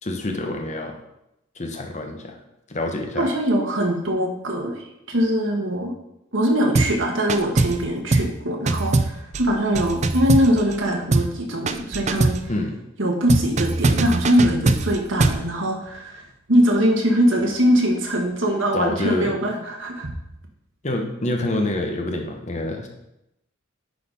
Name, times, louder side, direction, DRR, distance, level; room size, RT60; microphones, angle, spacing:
voice 1, 0.0-1.0 1.6-2.4 2.7-3.3 12.5-12.8 18.7-19.4 20.8-22.9, left 1 dB, 35° left, 3 dB, 1.0 m, -27 dB
voice 2, 3.2-5.9 6.3-12.3 13.0-16.2 16.5-20.1, equal, 60° right, 1 dB, 1.5 m, -22 dB
sound 1, 6.7-7.0 7.3-7.8 8.1-8.4 8.7-10.8 11.1-11.4 11.7-12.5 13.3-15.5, right 2 dB, 30° right, 0.4 m, -21 dB
9.9 x 4.2 x 5.2 m, 0.84 s
head